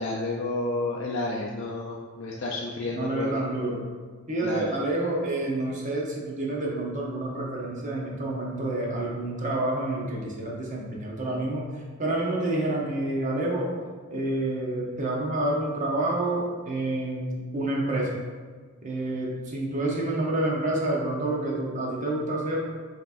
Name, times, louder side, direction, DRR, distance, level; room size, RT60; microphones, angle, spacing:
voice 1, 0.0-3.3 4.4-4.7, left 2 dB, 60° left, -3 dB, 0.4 m, -31 dB
voice 2, 2.9-3.8 4.3-13.7 14.1-18.1 18.8-22.7, right 2 dB, 35° right, -3 dB, 0.8 m, -28 dB
5.6 x 2.9 x 2.5 m, 1.5 s
head